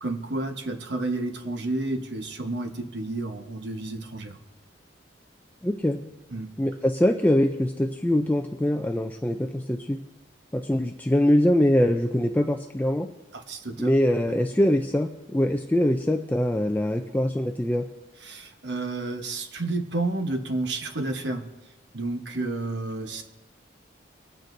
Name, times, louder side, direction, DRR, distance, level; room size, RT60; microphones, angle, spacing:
voice 1, 0.0-4.4 6.3-6.5 13.3-13.9 18.2-21.4 21.9-23.2, right 2 dB, 70° right, 6 dB, 1.0 m, -30 dB
voice 2, 5.6-6.0 6.6-10.0 10.5-13.1 13.8-17.8, left 1 dB, 10° left, 5 dB, 0.4 m, -23 dB
24.0 x 9.1 x 2.6 m, 1.1 s
head